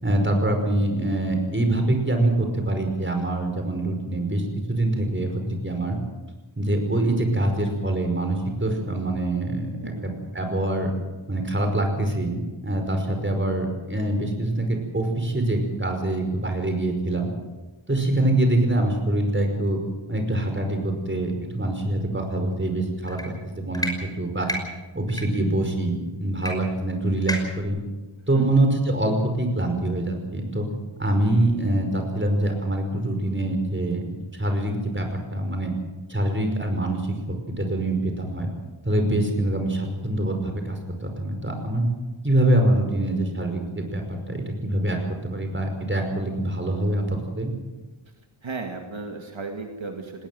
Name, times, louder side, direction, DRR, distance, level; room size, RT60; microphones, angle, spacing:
voice 1, 0.0-6.0 6.6-10.9 11.3-17.3 17.9-19.8 20.1-24.5 24.9-27.8 28.3-30.7 31.0-34.0 34.3-35.7 36.1-37.2 37.6-38.5 38.8-41.8 42.2-45.0 45.2-47.5, right 1 dB, 25° right, 4 dB, 5.3 m, -24 dB
voice 2, 9.8-10.2 28.3-28.5 48.2-50.3, right 3 dB, 70° right, 3 dB, 2.4 m, -35 dB
sound 1, 23.1-23.3 23.7-23.9 24.4-24.6 25.1-25.2 26.4-26.5 26.8-26.9 27.3-27.6, equal, 10° left, 5.7 m, -29 dB
19.5 x 19.0 x 7.8 m, 1.2 s
wide cardioid pair, 70°, 48 cm